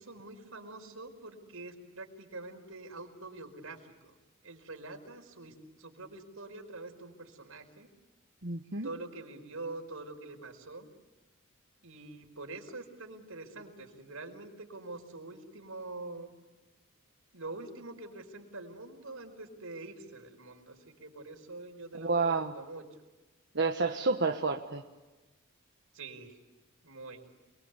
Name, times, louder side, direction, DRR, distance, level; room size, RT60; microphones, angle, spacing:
voice 1, 0.0-4.1 4.4-7.9 8.8-10.9 11.8-16.3 17.3-22.8 25.9-26.4 26.8-27.2, right 2 dB, 85° right, 4 dB, 4.9 m, -45 dB
voice 2, 8.4-8.9 21.9-22.5 23.5-24.8, right 3 dB, 55° right, 2 dB, 1.4 m, -30 dB
29.5 x 22.5 x 8.3 m, 1.2 s
head